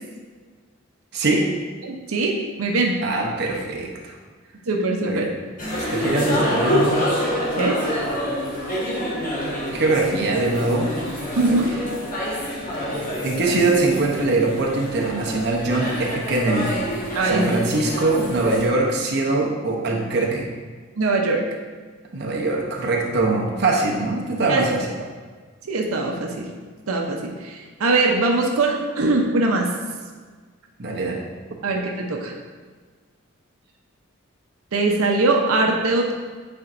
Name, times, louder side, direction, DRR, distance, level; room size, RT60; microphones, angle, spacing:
voice 1, 1.1-1.5 3.0-4.2 5.0-5.3 5.9-7.2 9.7-10.9 11.4-11.6 12.9-16.8 17.2-20.5 22.1-24.9 30.8-31.3, right 2 dB, 55° right, -1 dB, 0.8 m, -22 dB
voice 2, 1.8-2.9 4.7-5.3 7.6-7.8 11.4-11.7 17.1-17.6 21.0-21.4 24.5-24.8 25.6-26.5 26.9-29.7 31.6-32.3 34.7-36.1, right 3 dB, 90° right, 1 dB, 0.7 m, -21 dB
sound 1, 5.6-18.7, equal, 40° left, 1.3 m, -26 dB
8.7 x 4.3 x 2.5 m, 1.5 s
head